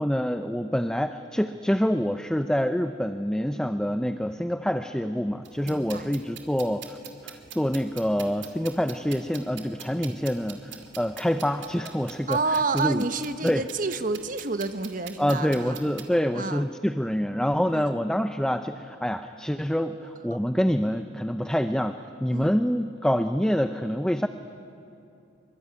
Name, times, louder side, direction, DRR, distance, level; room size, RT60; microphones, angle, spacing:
voice 1, 0.0-7.0 7.2-13.0 13.4-13.6 15.2-24.3, equal, 5° left, 9 dB, 0.5 m, -26 dB
sound 1, 5.5-16.0, right 9 dB, 65° right, 2.5 m, -45 dB
voice 2, 5.6-6.0 12.3-15.9 16.3-16.6 17.7-17.9 22.3-22.5, right 3 dB, 40° right, 10 dB, 1.1 m, -29 dB
24.0 x 24.0 x 9.5 m, 2.8 s
head